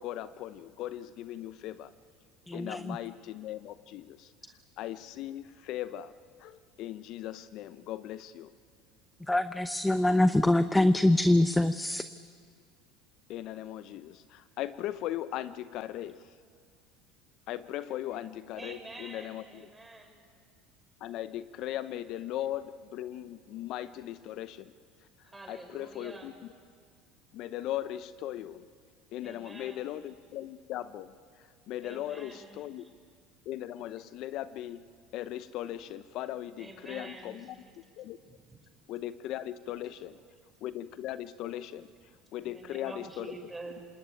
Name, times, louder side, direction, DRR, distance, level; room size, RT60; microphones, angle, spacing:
voice 1, 0.0-1.9 2.5-4.3 4.8-6.1 6.4-8.5 13.3-16.3 17.5-19.7 21.0-24.7 25.5-26.3 27.3-28.7 29.1-32.8 33.5-34.8 35.1-37.6 38.0-38.2 38.9-40.2 40.6-41.9 42.3-43.3, left 13 dB, 60° left, 14 dB, 0.7 m, -38 dB
voice 2, 2.5-3.0 9.3-12.0, left 1 dB, 10° left, 12 dB, 0.8 m, -24 dB
voice 3, 18.6-20.2 25.2-26.3 29.2-29.9 31.8-32.9 36.6-37.5 42.4-43.8, right 2 dB, 15° right, 4 dB, 5.3 m, -47 dB
26.5 x 20.5 x 9.2 m, 2.1 s
hypercardioid pair, 85°, 0 cm